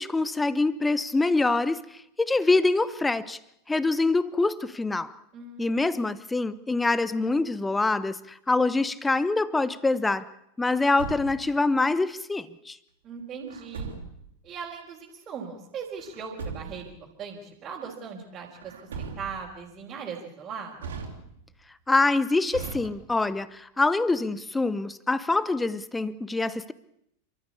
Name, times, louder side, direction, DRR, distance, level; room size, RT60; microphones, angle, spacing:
voice 1, 0.0-1.8 2.2-3.4 3.7-5.1 5.6-10.3 10.6-12.8 21.9-26.7, left 3 dB, 10° left, 0.9 m, -25 dB
voice 2, 5.3-5.8 13.0-13.9 14.4-16.9 17.2-18.7 19.0-20.9, right 6 dB, 25° right, 4.3 m, -39 dB
Truck, 10.7-11.6 13.5-14.3 16.0-17.0 18.6-19.6 20.8-21.6 22.5-23.4, right 5 dB, 65° right, 3.6 m, -39 dB
28.5 x 14.0 x 8.5 m
figure-of-eight pair, 90°, 0 cm